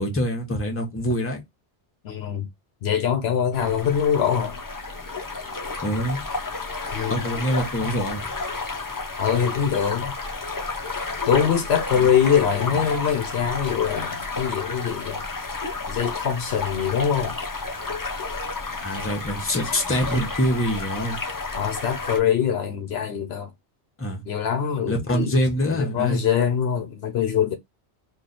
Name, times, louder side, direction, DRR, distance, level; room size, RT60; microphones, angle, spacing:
voice 1, 0.0-1.4 5.8-6.2 7.1-8.3 12.0-12.1 18.8-21.2 24.0-24.2 24.9-26.2, equal, 15° left, 0.8 m, -25 dB
voice 2, 2.0-2.5 2.8-4.6 6.9-7.2 9.2-10.1 11.3-15.2 15.9-17.4 21.5-23.5 24.3-25.3 25.7-27.5, left 8 dB, 70° left, 0.8 m, -23 dB
sound 1, 3.5-22.2, left 3 dB, 30° left, 0.4 m, -31 dB
3.1 x 2.5 x 3.9 m
omnidirectional pair, 1.2 m